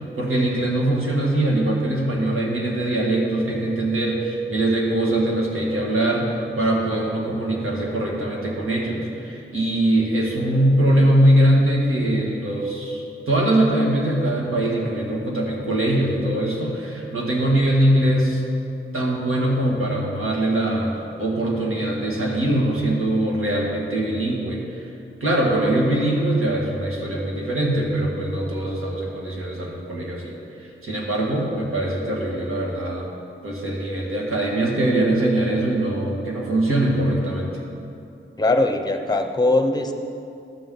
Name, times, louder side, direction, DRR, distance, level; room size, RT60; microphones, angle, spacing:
voice 1, 0.2-18.4 18.9-20.9 21.2-24.9 25.2-30.3 30.6-33.1 33.4-37.5, right 1 dB, 85° right, -3 dB, 1.8 m, -22 dB
voice 2, 38.4-39.9, left 2 dB, 20° left, 4 dB, 0.8 m, -20 dB
12.5 x 7.3 x 3.9 m, 2.7 s
wide cardioid pair, 80°, 21 cm